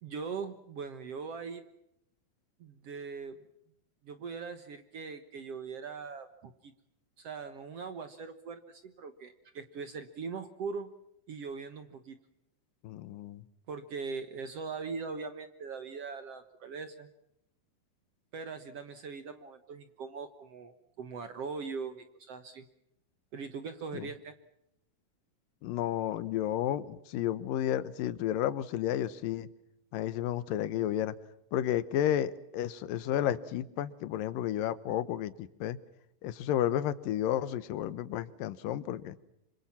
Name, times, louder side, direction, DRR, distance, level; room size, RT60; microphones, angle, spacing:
voice 1, 0.0-1.6 2.6-3.3 4.0-6.7 7.2-10.9 11.3-12.2 13.7-17.1 18.3-22.7 23.3-24.3, right 5 dB, 60° right, 10 dB, 1.8 m, -41 dB
voice 2, 12.8-13.4 23.9-24.1 25.6-29.5 29.9-31.1 31.5-35.8 36.2-39.2, left 11 dB, 75° left, 16 dB, 2.7 m, -32 dB
26.5 x 25.5 x 5.8 m, 0.80 s
omnidirectional pair, 4.2 m